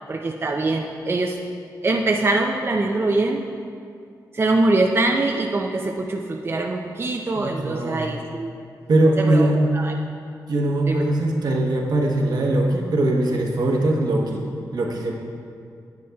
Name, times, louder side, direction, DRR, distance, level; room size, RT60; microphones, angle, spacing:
voice 1, 0.1-1.4 1.8-3.4 4.3-8.5 9.2-10.0 10.9-11.0, right 2 dB, 35° right, 2 dB, 0.5 m, -23 dB
voice 2, 7.3-8.1 8.9-9.6 10.5-15.1, right 1 dB, 70° right, 0 dB, 1.0 m, -21 dB
9.3 x 8.7 x 2.3 m, 2.4 s
cardioid pair, 75°, 7 cm